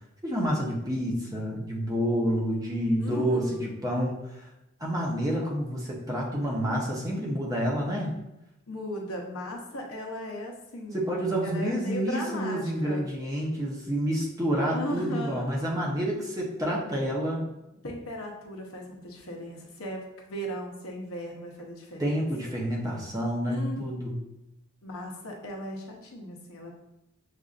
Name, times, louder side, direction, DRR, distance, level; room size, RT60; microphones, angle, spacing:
voice 1, 0.2-4.2 4.8-8.1 10.9-17.5 22.0-24.1, equal, 15° right, -3 dB, 0.8 m, -28 dB
voice 2, 3.0-3.7 8.7-11.1 11.4-13.1 14.7-15.6 17.8-22.6 23.5-23.8 24.8-26.8, equal, 70° left, -1 dB, 0.8 m, -37 dB
6.5 x 2.6 x 2.4 m, 0.92 s
head